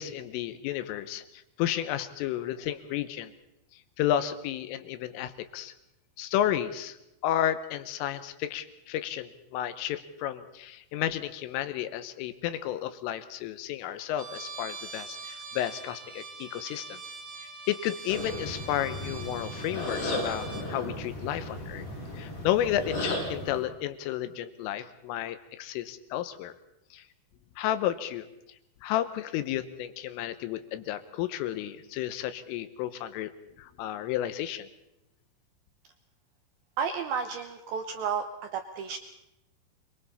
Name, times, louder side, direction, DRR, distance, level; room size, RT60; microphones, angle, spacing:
voice 1, 0.0-3.3 4.0-5.7 6.2-7.0 7.2-17.0 17.7-21.9 22.2-26.5 26.9-27.0 27.6-28.3 28.8-33.3 33.6-34.7, left 11 dB, 90° left, 11 dB, 3.5 m, -32 dB
Trumpet, 14.2-20.7, right 4 dB, 25° right, 6.2 m, -43 dB
sound 1, 18.1-23.6, left 1 dB, 55° left, 9.5 m, -35 dB
voice 2, 36.8-38.3 38.5-39.0, right 6 dB, 85° right, 6 dB, 2.1 m, -32 dB
27.5 x 23.0 x 4.2 m, 0.87 s
omnidirectional pair, 5.7 m